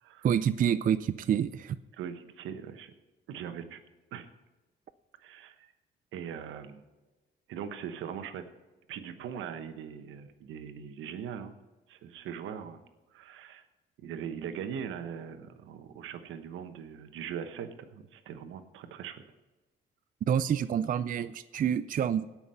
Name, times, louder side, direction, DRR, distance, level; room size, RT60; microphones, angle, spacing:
voice 1, 0.2-1.8 20.3-22.2, right 9 dB, 45° right, 13 dB, 0.4 m, -27 dB
voice 2, 1.9-2.9 3.3-3.8 4.1-4.3 5.2-5.7 6.1-6.8 7.5-8.4 8.9-11.5 11.9-12.8 13.1-13.6 14.0-19.2, right 8 dB, 85° right, 9 dB, 1.0 m, -40 dB
17.5 x 6.0 x 5.5 m, 1.1 s
cardioid pair, 90°, 20 cm